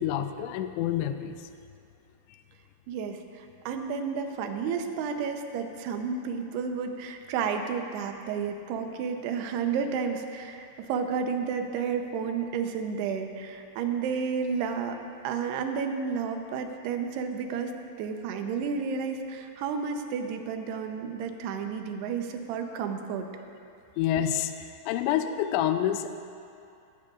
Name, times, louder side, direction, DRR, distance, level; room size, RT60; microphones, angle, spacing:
voice 1, 0.0-1.5 2.3-2.4 24.0-26.1, left 10 dB, 85° left, 8 dB, 2.9 m, -28 dB
voice 2, 2.9-15.0 15.2-17.7 18.0-23.3, right 6 dB, 75° right, 5 dB, 2.7 m, -31 dB
18.0 x 16.0 x 2.5 m, 2.5 s
omnidirectional pair, 5.2 m